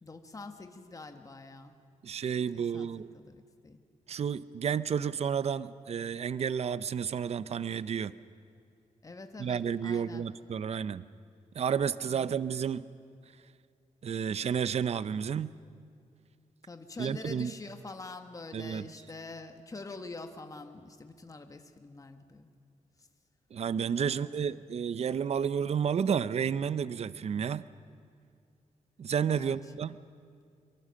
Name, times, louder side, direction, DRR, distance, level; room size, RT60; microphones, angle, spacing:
voice 1, 0.0-1.7 2.5-3.8 9.0-10.3 12.1-12.4 16.6-22.5 23.0-23.1 24.0-24.5 29.3-29.7, left 3 dB, 25° left, 6 dB, 1.4 m, -46 dB
voice 2, 2.0-3.1 4.1-8.1 9.4-11.0 11.5-12.8 14.0-15.5 17.0-17.5 18.5-18.9 23.5-27.7 29.0-30.0, right 7 dB, 55° right, 16 dB, 0.6 m, -31 dB
24.5 x 22.5 x 6.5 m, 2.3 s
wide cardioid pair, 115°, 13 cm